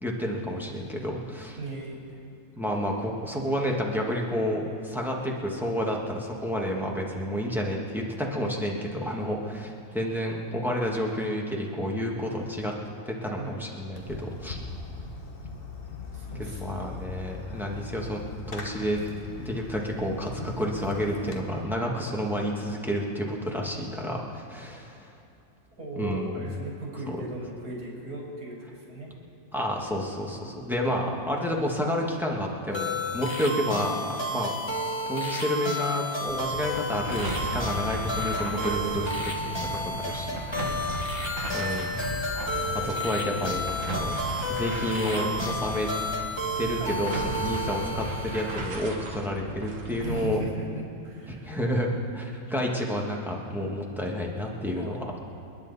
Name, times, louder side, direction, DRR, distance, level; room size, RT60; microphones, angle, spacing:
voice 1, 0.0-1.6 2.6-12.7 13.0-14.6 16.4-18.2 18.5-19.0 19.4-25.1 25.9-26.4 29.5-34.5 35.1-40.4 41.5-42.0 42.8-44.1 44.5-45.9 46.5-50.4 51.3-55.1, equal, ahead, -1 dB, 1.5 m, -30 dB
voice 2, 1.6-2.2 9.0-9.2 13.4-13.6 16.1-17.2 21.8-22.0 25.8-29.1 33.3-33.4 38.0-38.1 40.6-40.8 46.8-47.0 50.0-51.5 54.8-55.2, right 1 dB, 75° right, -4 dB, 5.3 m, -38 dB
Fireworks, 13.9-21.4, left 4 dB, 40° left, 1.3 m, -39 dB
sound 1, 32.7-48.9, left 1 dB, 20° left, 1.4 m, -32 dB
sound 2, 36.3-50.3, right 1 dB, 55° right, 1.8 m, -35 dB
29.5 x 10.0 x 4.1 m, 2.7 s
omnidirectional pair, 1.7 m